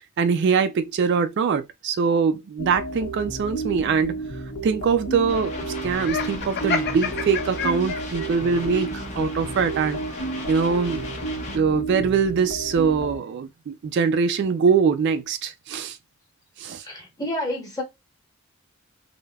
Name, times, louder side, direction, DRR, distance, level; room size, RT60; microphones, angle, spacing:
voice 1, 0.0-4.2 4.6-10.0 10.5-11.0 11.5-16.0 16.6-16.8, right 6 dB, 55° right, 0.3 m, -23 dB
sound 1, 2.6-13.2, right 2 dB, 75° left, 0.9 m, -32 dB
sound 2, 5.3-11.6, left 3 dB, 35° left, 0.8 m, -38 dB
Laughter, 6.0-8.3, left 6 dB, 50° left, 0.4 m, -29 dB
voice 2, 16.8-17.8, left 1 dB, 20° left, 1.1 m, -29 dB
3.3 x 2.0 x 2.2 m
head